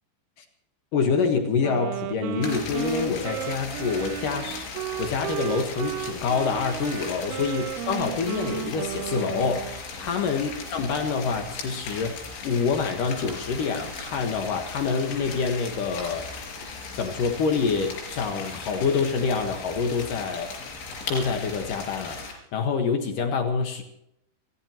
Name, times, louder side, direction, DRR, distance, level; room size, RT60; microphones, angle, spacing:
voice 1, 0.9-4.7 5.0-16.2 16.9-20.5 21.1-23.8, left 5 dB, 60° left, 4 dB, 2.4 m, -26 dB
Wind instrument woodwind instrument, 1.6-9.8, right 14 dB, 80° right, 2.4 m, -34 dB
sound 1, 2.4-22.3, left 4 dB, 85° left, 6.9 m, -38 dB
30.0 x 14.0 x 3.0 m, 0.79 s
omnidirectional pair, 5.5 m